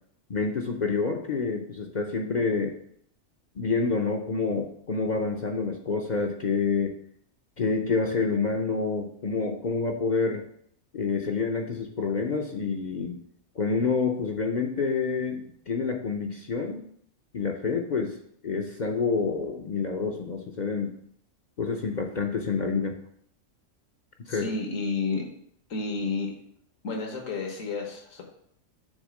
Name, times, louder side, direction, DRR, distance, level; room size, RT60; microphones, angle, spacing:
voice 1, 0.3-2.7 3.6-6.9 7.6-10.4 10.9-13.2 13.6-16.8 17.3-18.2 18.4-20.9 21.6-23.0 24.3-24.5, left 4 dB, 45° left, 2 dB, 0.6 m, -28 dB
voice 2, 24.3-25.3 25.7-26.4 26.8-28.2, left 4 dB, 80° left, 1 dB, 1.7 m, -31 dB
6.4 x 4.0 x 6.3 m, 0.68 s
omnidirectional pair, 1.3 m